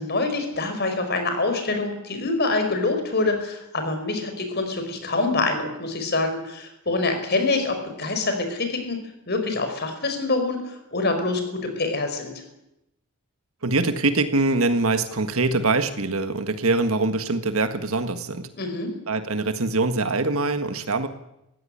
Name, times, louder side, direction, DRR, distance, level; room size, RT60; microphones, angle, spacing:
voice 1, 0.0-9.0 9.3-12.4 18.5-18.9, left 3 dB, 45° left, 6 dB, 5.0 m, -25 dB
voice 2, 13.6-18.5 19.1-21.1, right 3 dB, 70° right, 9 dB, 1.6 m, -23 dB
20.5 x 16.0 x 10.0 m, 0.86 s
head